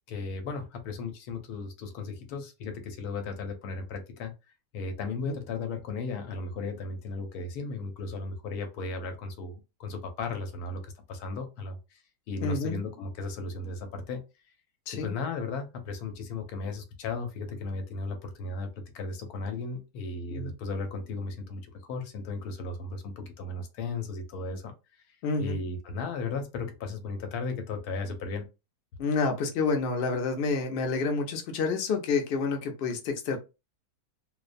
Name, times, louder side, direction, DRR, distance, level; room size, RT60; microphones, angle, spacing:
voice 1, 0.1-4.3 4.7-12.0 12.3-14.2 15.0-24.7 25.4-28.5, left 3 dB, 80° left, 1.1 m, -35 dB
voice 2, 12.4-12.8 14.9-15.1 20.3-20.5 25.2-25.6 29.0-33.4, left 4 dB, 60° left, 0.6 m, -29 dB
2.5 x 2.1 x 2.4 m
omnidirectional pair, 1.6 m